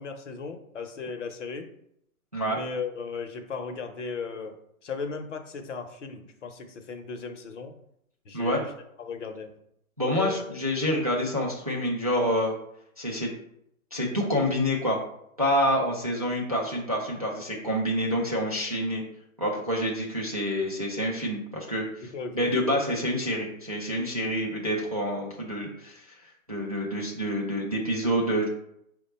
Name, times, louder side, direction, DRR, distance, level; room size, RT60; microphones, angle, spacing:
voice 1, 0.0-1.7 2.4-4.6 4.8-7.7 8.2-8.7 9.0-9.5 10.0-10.4 22.0-22.5, left 5 dB, 55° left, 5 dB, 0.8 m, -36 dB
voice 2, 10.0-12.5 13.0-13.3 13.9-15.0 15.4-19.0 19.4-21.8 22.3-26.1 26.5-28.5, equal, 30° right, -3 dB, 0.4 m, -27 dB
4.7 x 2.2 x 4.2 m, 0.74 s
hypercardioid pair, 170°, 43 cm